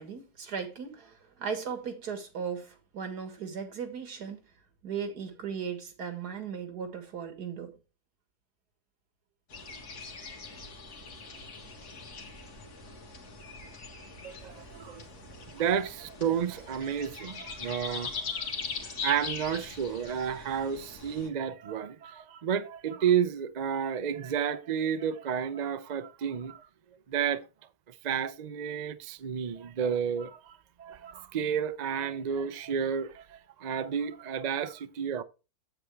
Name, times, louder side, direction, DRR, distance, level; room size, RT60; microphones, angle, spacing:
voice 1, 0.0-4.4 4.8-7.7, right 6 dB, 85° right, 2.2 m, -37 dB
sound 1, 9.5-21.3, left 4 dB, 80° left, 2.1 m, -41 dB
voice 2, 14.2-15.0 15.5-18.5 18.8-26.7 27.1-27.4 28.0-35.2, right 8 dB, 55° right, 0.4 m, -31 dB
8.2 x 8.1 x 3.3 m
omnidirectional pair, 1.7 m